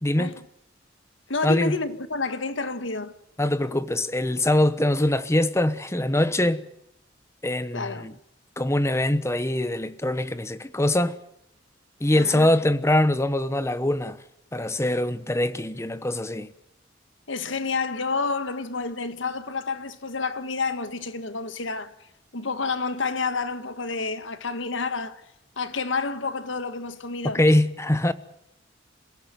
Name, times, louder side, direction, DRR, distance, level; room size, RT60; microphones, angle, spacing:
voice 1, 0.0-0.4 1.4-1.8 3.4-6.7 7.4-8.1 8.6-11.1 12.0-14.2 14.5-16.5 27.2-28.1, left 1 dB, 15° left, 1.1 m, -23 dB
voice 2, 1.3-3.1 7.7-8.1 12.1-12.5 17.3-22.1 22.3-25.2 25.6-27.4, left 4 dB, 85° left, 1.6 m, -29 dB
27.5 x 16.5 x 9.2 m
head